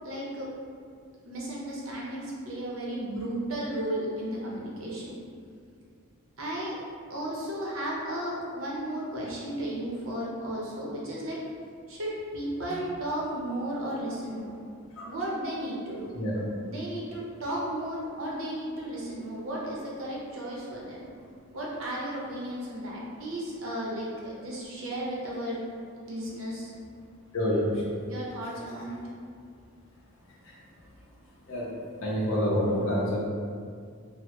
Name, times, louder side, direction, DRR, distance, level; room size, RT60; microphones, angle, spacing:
voice 1, 0.0-0.5 1.3-5.2 6.4-6.8 7.1-11.4 11.9-14.5 15.1-16.1 16.6-21.0 21.5-25.6 26.1-26.7 28.1-29.0, right 1 dB, 65° right, -5 dB, 0.7 m, -34 dB
voice 2, 27.3-28.0 28.4-28.5 30.4-30.5 31.5-33.2, equal, 60° left, -6 dB, 0.6 m, -28 dB
3.1 x 2.1 x 2.9 m, 2.1 s
head